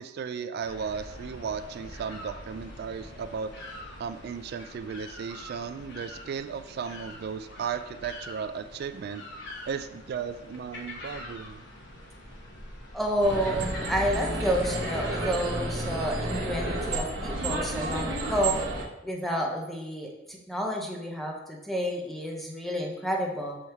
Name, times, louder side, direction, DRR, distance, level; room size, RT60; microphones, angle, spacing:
voice 1, 0.0-3.5 4.0-9.2 9.7-11.6, right 6 dB, 55° right, 10 dB, 0.3 m, -35 dB
sound 1, 0.6-15.4, left 1 dB, 65° left, 1.1 m, -44 dB
voice 2, 12.9-18.6 19.0-23.6, equal, ahead, 0 dB, 0.8 m, -30 dB
sound 2, 13.2-18.8, right 2 dB, 70° right, 1.2 m, -31 dB
6.3 x 3.5 x 4.4 m, 0.94 s
head